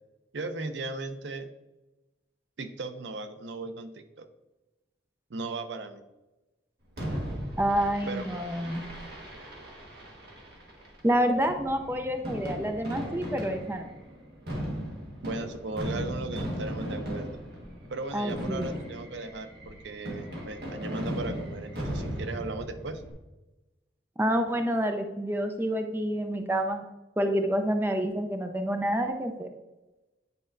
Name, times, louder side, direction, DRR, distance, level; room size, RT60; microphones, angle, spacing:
voice 1, 0.3-1.5 2.6-4.3 5.3-6.0 8.1-8.2 15.2-17.4 17.9-23.0, right 3 dB, 90° right, 9 dB, 0.6 m, -37 dB
Fireworks, 7.0-23.1, equal, 60° right, 1.4 m, -37 dB
voice 2, 7.6-8.8 11.0-13.9 18.1-18.7 24.2-26.9 27.2-29.5, equal, 10° right, 6 dB, 0.4 m, -28 dB
9.2 x 4.2 x 2.5 m, 1.1 s
head